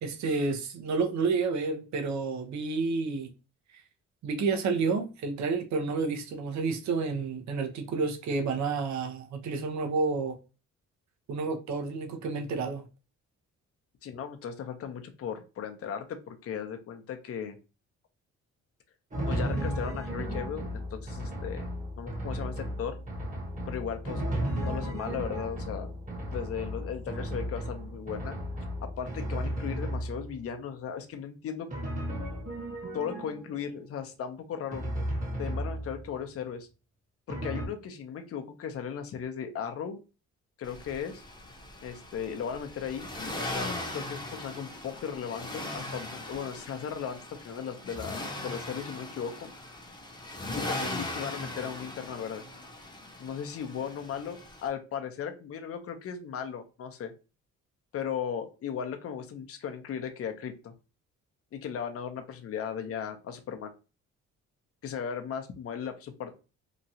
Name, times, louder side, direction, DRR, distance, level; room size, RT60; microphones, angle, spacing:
voice 1, 0.0-3.3 3.7-3.8 4.2-10.4 11.3-12.8, right 4 dB, 65° right, 0.7 m, -30 dB
voice 2, 14.0-17.6 19.3-21.7 22.0-23.0 23.7-24.3 24.6-25.9 26.3-28.4 28.8-31.7 32.9-34.8 35.4-36.7 37.3-40.0 40.6-41.2 41.8-43.1 43.5-49.5 50.6-52.4 53.2-57.1 57.9-60.7 61.5-63.7 64.8-66.3, left 7 dB, 50° left, 0.6 m, -37 dB
Drum, 19.1-30.5 31.7-33.7 34.7-36.2 37.3-37.7, equal, 25° right, 1.1 m, -34 dB
Accelerating revving vroom, 40.6-54.7, left 1 dB, 15° left, 0.8 m, -39 dB
2.9 x 2.3 x 2.7 m
cardioid pair, 90°, 30 cm